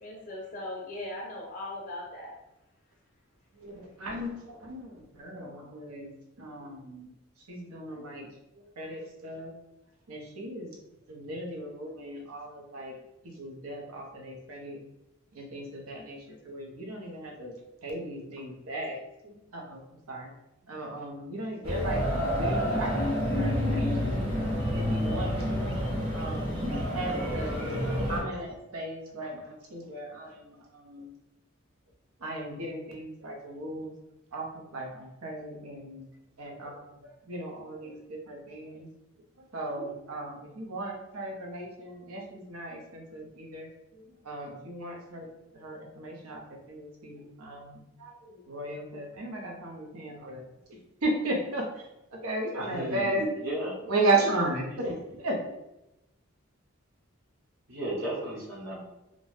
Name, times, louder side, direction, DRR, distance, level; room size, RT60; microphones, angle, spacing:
voice 1, 0.0-2.3, left 1 dB, 40° left, -4 dB, 0.4 m, -39 dB
voice 2, 3.5-6.1 6.4-7.1 7.5-8.3 8.5-9.5 10.1-10.7 11.1-13.0 13.2-14.8 15.3-17.5 17.8-19.0 19.2-20.3 20.6-24.3 24.7-25.8 26.1-26.5 26.9-27.7 28.1-31.1 32.2-33.9 34.3-36.1 36.4-38.9 39.4-45.3 45.5-50.4 50.7-53.3 53.8-55.4, right 2 dB, 85° right, 1 dB, 0.7 m, -35 dB
sound 1, 21.6-28.2, equal, 25° right, 0.6 m, -28 dB
voice 3, 52.7-53.1 53.4-53.7 54.8-54.9 57.7-58.8, right 1 dB, 60° right, -7 dB, 0.9 m, -34 dB
2.5 x 2.1 x 3.2 m, 0.92 s
head